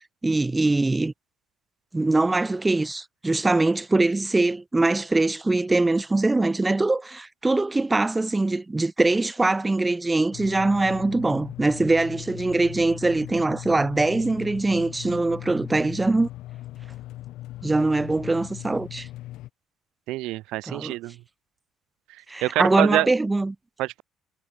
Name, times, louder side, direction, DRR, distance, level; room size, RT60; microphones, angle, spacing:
voice 1, 0.2-1.1 1.9-16.3 17.6-19.1 20.7-21.0 22.3-23.6, right 2 dB, 10° right, 0.4 m, -22 dB
sound 1, 10.3-19.5, left 15 dB, 75° left, 6.5 m, -39 dB
voice 2, 20.1-21.2 22.4-23.1 23.8-24.0, right 18 dB, 90° right, 0.8 m, -26 dB
cardioid pair, 145°, 0 cm